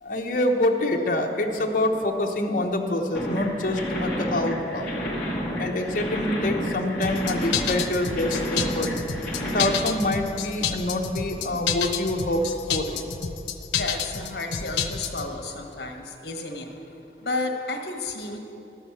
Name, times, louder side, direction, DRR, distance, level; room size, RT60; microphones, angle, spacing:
voice 1, 0.0-5.0 5.6-8.9 9.5-13.0, left 1 dB, 45° left, 2 dB, 0.9 m, -26 dB
sound 1, 3.1-9.7, equal, 5° left, 1.6 m, -30 dB
sound 2, 7.0-15.3, left 7 dB, 90° left, 0.6 m, -29 dB
voice 2, 13.8-16.7 17.2-18.4, left 2 dB, 65° left, 3 dB, 1.2 m, -32 dB
12.0 x 6.1 x 7.1 m, 2.8 s
head